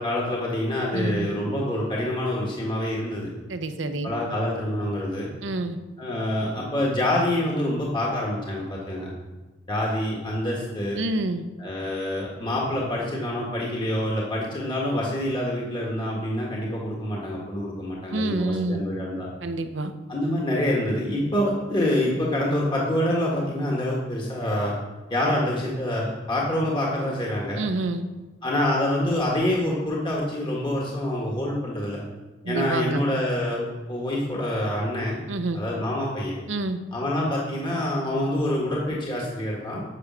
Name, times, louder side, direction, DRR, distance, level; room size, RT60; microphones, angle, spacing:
voice 1, 0.0-3.3 4.0-5.3 6.0-9.1 9.7-11.0 11.6-19.3 20.1-24.7 25.1-27.6 28.4-32.0 32.5-35.2 35.5-36.4 36.9-39.8, left 1 dB, 25° left, -3 dB, 1.6 m, -26 dB
voice 2, 0.9-1.3 3.5-4.1 5.4-5.8 11.0-11.5 18.1-18.8 19.4-19.9 27.6-28.0 32.4-33.1 35.3-35.6 36.5-36.8, right 2 dB, 70° right, 9 dB, 0.8 m, -28 dB
9.8 x 6.3 x 6.2 m, 1.2 s
head